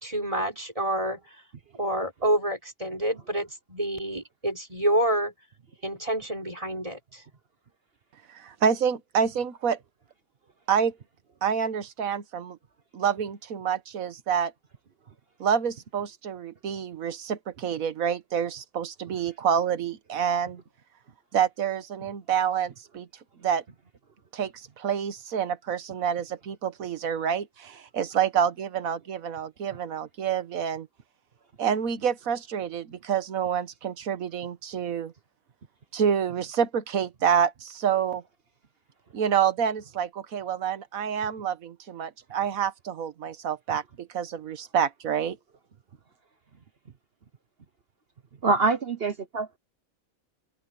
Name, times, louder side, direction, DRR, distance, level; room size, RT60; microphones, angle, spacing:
voice 1, 0.0-1.2 1.7-5.3 5.8-7.2, right 1 dB, 25° right, 4.8 m, -28 dB
voice 2, 8.3-9.8 10.7-10.9 11.4-12.6 12.9-14.5 15.4-20.6 21.3-23.1 23.4-23.6 24.3-30.9 31.6-35.1 35.9-38.2 39.1-45.4, right 8 dB, 75° right, 1.5 m, -27 dB
voice 3, 48.4-49.6, right 3 dB, 45° right, 1.1 m, -25 dB
open air
omnidirectional pair, 1.5 m